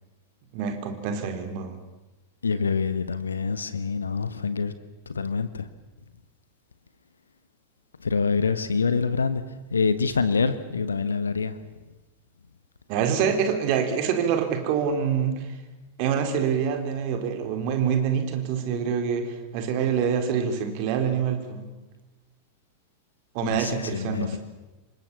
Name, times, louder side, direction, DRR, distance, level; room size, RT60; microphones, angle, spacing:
voice 1, 0.5-1.8 12.9-15.4 16.0-21.7 23.3-24.4, right 7 dB, 45° right, 6 dB, 4.1 m, -26 dB
voice 2, 2.4-4.7 5.1-5.7 8.0-9.4 9.7-11.6 23.4-24.4, left 5 dB, 75° left, 13 dB, 1.2 m, -26 dB
27.5 x 24.5 x 7.1 m, 1.1 s
figure-of-eight pair, 90°, 0 cm